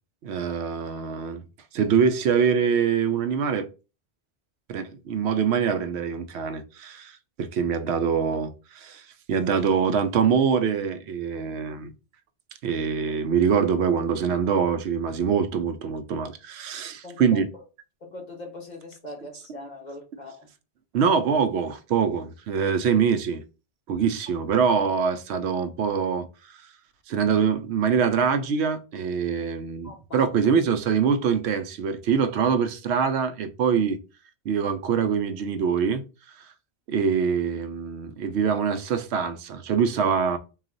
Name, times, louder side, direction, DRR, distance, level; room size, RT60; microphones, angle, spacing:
voice 1, 0.2-1.4 1.7-3.7 4.7-7.1 7.4-9.0 9.3-11.9 12.6-17.5 20.9-23.4 23.9-26.3 27.1-34.0 34.5-36.0 36.9-40.4, right 6 dB, 85° right, 0.9 m, -24 dB
voice 2, 17.0-17.4 18.0-20.5 29.8-30.3, left 2 dB, 45° left, 1.1 m, -41 dB
4.0 x 2.4 x 3.8 m
omnidirectional pair, 1.1 m